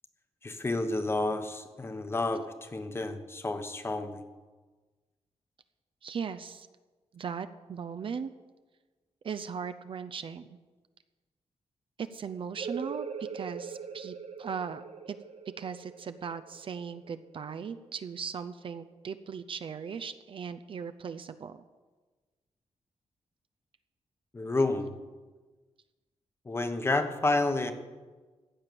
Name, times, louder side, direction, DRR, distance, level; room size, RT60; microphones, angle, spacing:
voice 1, 0.4-4.2 24.3-24.9 26.4-27.7, left 2 dB, 20° left, 7 dB, 1.1 m, -30 dB
voice 2, 6.0-6.7 7.1-8.3 9.2-10.6 12.0-13.1 13.3-15.2 15.6-21.6, right 6 dB, 50° right, 10 dB, 0.6 m, -38 dB
sound 1, 12.6-17.9, right 6 dB, 65° right, 0.9 m, -42 dB
15.5 x 9.1 x 6.9 m, 1.3 s
wide cardioid pair, 175°, 12 cm